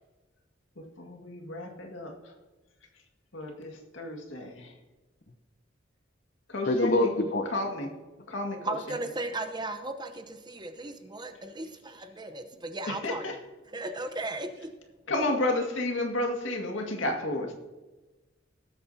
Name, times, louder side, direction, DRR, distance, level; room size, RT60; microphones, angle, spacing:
voice 1, 0.8-2.1 3.3-4.7 6.5-7.1 7.5-7.9 8.3-8.7 12.9-13.4 15.1-17.5, left 2 dB, 80° left, 2 dB, 2.1 m, -32 dB
voice 2, 6.6-7.5, left 1 dB, 55° left, 5 dB, 0.9 m, -25 dB
voice 3, 8.6-13.3 13.7-14.7, right 2 dB, 25° right, 7 dB, 0.9 m, -36 dB
19.5 x 8.4 x 2.8 m, 1.2 s
head